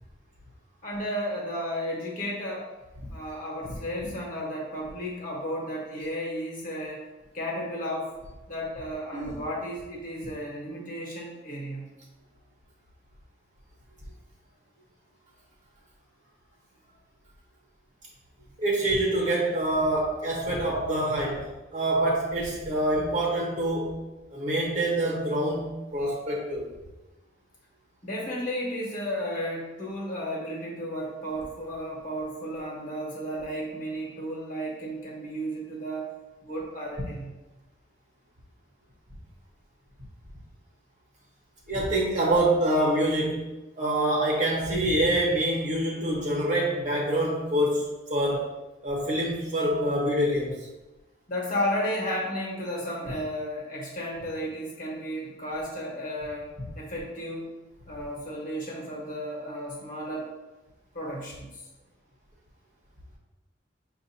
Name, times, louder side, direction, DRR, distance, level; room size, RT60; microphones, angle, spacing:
voice 1, 0.8-2.7 3.1-7.0 7.3-8.1 8.5-11.9 28.0-36.1 36.4-37.3 51.3-57.5 57.9-60.3 60.9-61.5, equal, 50° left, -3 dB, 1.2 m, -33 dB
voice 2, 18.6-24.0 24.3-26.7 41.7-43.5 43.8-48.5 48.8-50.7, right 1 dB, 45° right, -3 dB, 1.2 m, -26 dB
6.0 x 2.6 x 2.7 m, 1.1 s
head